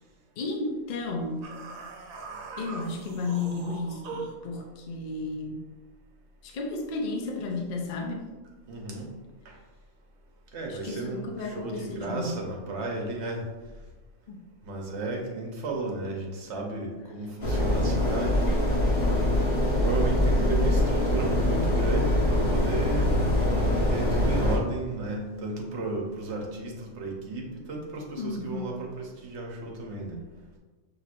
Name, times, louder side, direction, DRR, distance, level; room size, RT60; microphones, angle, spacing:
voice 1, 0.4-1.5 2.6-5.7 6.4-8.3 10.7-12.4 14.3-14.5 28.2-28.8, left 3 dB, 65° left, 1 dB, 0.4 m, -33 dB
sound 1, 1.4-4.5, right 4 dB, 80° right, 1.1 m, -41 dB
voice 2, 8.7-9.1 9.4-9.6 10.5-13.5 14.6-18.7 19.0-19.3 19.8-23.2 23.6-30.2, right 2 dB, 60° right, 0 dB, 1.0 m, -34 dB
sound 2, 17.4-24.6, left 1 dB, 35° left, 0.8 m, -24 dB
5.8 x 2.9 x 2.5 m, 1.2 s
omnidirectional pair, 1.4 m